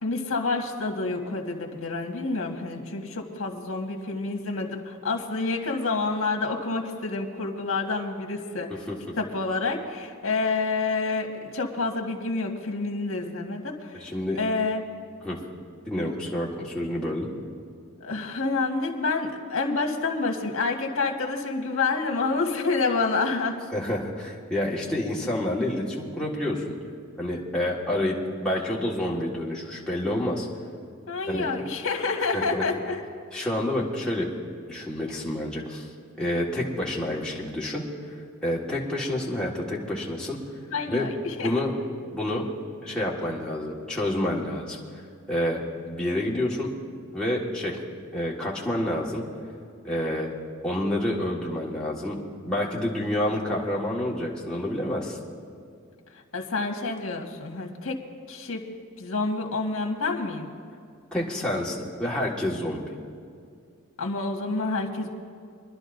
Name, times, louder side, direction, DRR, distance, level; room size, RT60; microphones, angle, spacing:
voice 1, 0.0-8.9 9.2-14.0 14.4-14.8 18.0-23.6 31.1-33.0 40.7-41.6 56.3-58.0 58.3-58.6 59.0-60.5 64.0-65.1, left 3 dB, 75° left, 2 dB, 1.6 m, -28 dB
voice 2, 14.0-14.4 15.2-15.4 15.9-17.3 23.7-26.8 27.2-28.1 28.4-30.5 31.3-31.5 32.3-32.6 33.3-34.3 34.6-35.9 36.2-37.8 38.4-40.4 40.9-41.0 41.4-41.7 42.1-42.5 42.8-44.8 45.3-46.7 47.1-47.8 48.1-49.2 49.8-50.3 50.6-52.2 52.4-55.2 61.1-62.8, left 1 dB, 5° left, -5 dB, 1.6 m, -28 dB
24.5 x 11.0 x 2.6 m, 2.3 s
head